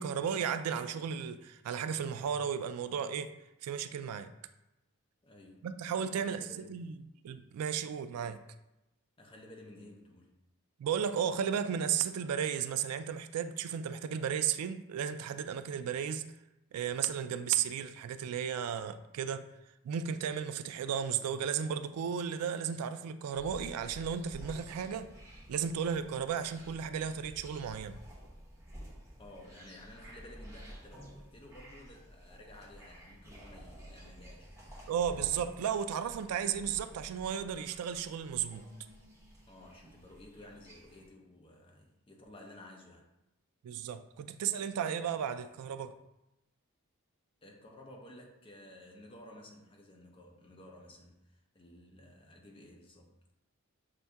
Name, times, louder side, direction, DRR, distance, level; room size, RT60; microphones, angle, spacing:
voice 1, 0.0-3.3 3.6-4.3 5.6-6.9 7.2-8.4 10.8-16.2 16.7-19.5 19.8-25.1 25.5-28.0 34.9-38.6 43.6-45.9, right 8 dB, 90° right, 10 dB, 0.3 m, -34 dB
voice 2, 5.2-5.7 6.1-6.7 9.2-10.3 29.2-34.6 39.5-43.0 47.4-53.1, left 1 dB, 25° left, 1 dB, 0.6 m, -54 dB
sound 1, 23.3-41.1, equal, 10° right, 0.8 m, -51 dB
6.7 x 2.6 x 2.3 m, 0.91 s
head